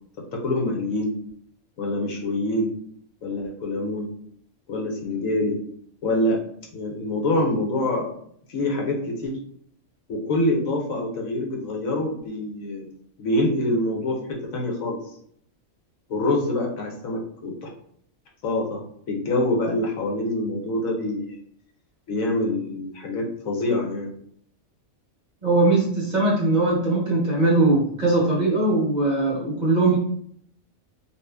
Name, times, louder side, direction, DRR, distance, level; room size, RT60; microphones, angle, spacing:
voice 1, 0.3-1.1 1.8-2.7 3.2-4.1 4.7-5.6 6.0-6.4 6.7-8.1 8.5-9.4 10.1-12.9 13.2-15.0 16.1-17.7 18.4-18.8 19.1-21.4 22.1-24.2, left 1 dB, 80° left, 0 dB, 1.2 m, -25 dB
voice 2, 25.4-30.0, right 2 dB, 40° right, -4 dB, 0.7 m, -20 dB
2.9 x 2.5 x 3.3 m, 0.64 s
omnidirectional pair, 1.4 m